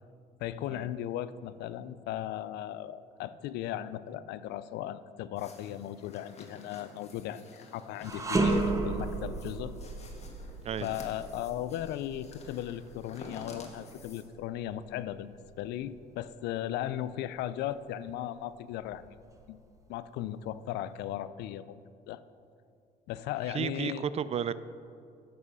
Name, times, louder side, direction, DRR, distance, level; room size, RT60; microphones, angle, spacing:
voice 1, 0.4-9.7 10.8-15.3 15.6-19.2 19.5-19.6 19.9-21.8 22.1-22.2 23.1-24.0, left 12 dB, 80° left, 15 dB, 0.4 m, -37 dB
sound 1, 5.4-14.2, left 3 dB, 40° left, 1.5 m, -51 dB
sound 2, 8.0-17.3 17.7-17.9 18.7-19.6, right 2 dB, 20° right, 0.9 m, -35 dB
voice 2, 23.5-24.5, right 8 dB, 40° right, 16 dB, 0.4 m, -32 dB
9.3 x 6.2 x 6.2 m, 2.5 s
cardioid pair, 110°, 17 cm